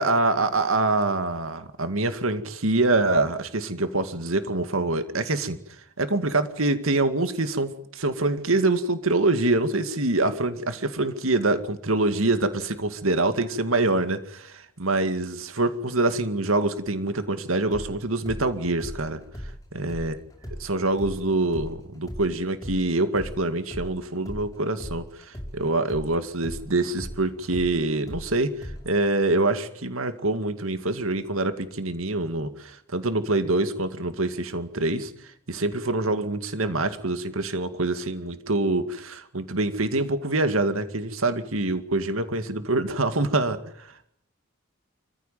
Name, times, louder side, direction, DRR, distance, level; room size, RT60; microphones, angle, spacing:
voice 1, 0.0-5.6 6.0-19.2 19.7-20.2 20.6-35.1 35.5-44.1, right 2 dB, 80° right, 9 dB, 2.2 m, -25 dB
sound 1, 17.7-25.6 25.9-29.1, equal, 15° left, 5.3 m, -38 dB
26.5 x 15.5 x 9.2 m, 0.69 s
head